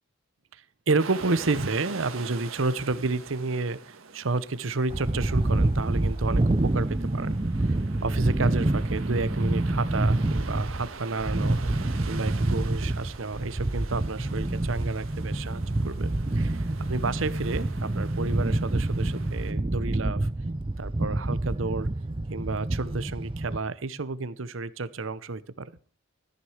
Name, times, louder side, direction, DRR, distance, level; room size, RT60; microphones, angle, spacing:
voice 1, 0.5-7.4 7.7-7.8 8.0-11.8 12.1-20.3 20.8-21.9 22.3-25.7, right 3 dB, 75° right, 16 dB, 0.9 m, -30 dB
sound 1, 1.0-19.5, right 5 dB, 90° right, 1.7 m, -45 dB
sound 2, 4.9-23.6, right 2 dB, 25° right, 0.5 m, -27 dB
14.5 x 9.5 x 4.9 m, 0.40 s
head